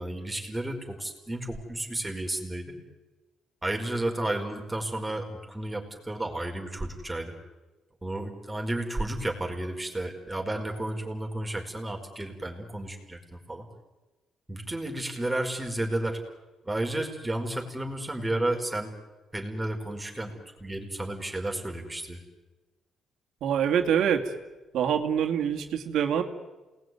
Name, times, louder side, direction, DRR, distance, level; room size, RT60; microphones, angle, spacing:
voice 1, 0.0-2.7 3.6-7.3 8.0-13.2 13.5-13.7 14.5-16.2 16.6-18.9 19.3-22.2, right 1 dB, 15° right, 2 dB, 4.9 m, -32 dB
voice 2, 23.4-24.4 24.7-26.2, right 8 dB, 75° right, 4 dB, 2.6 m, -25 dB
28.0 x 20.0 x 9.6 m, 1.2 s
cardioid pair, 90°, 0 cm